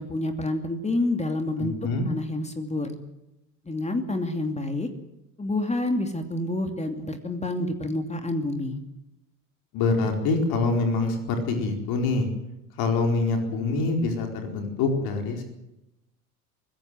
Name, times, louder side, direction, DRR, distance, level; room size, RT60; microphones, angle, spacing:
voice 1, 0.0-1.7 2.1-2.9 3.7-4.9 5.4-8.8, left 2 dB, 15° left, 7 dB, 2.7 m, -28 dB
voice 2, 1.6-2.0 9.7-12.3 12.8-15.4, left 3 dB, 55° left, 4 dB, 4.5 m, -25 dB
23.5 x 16.5 x 7.8 m, 0.92 s
figure-of-eight pair, 75°, 44 cm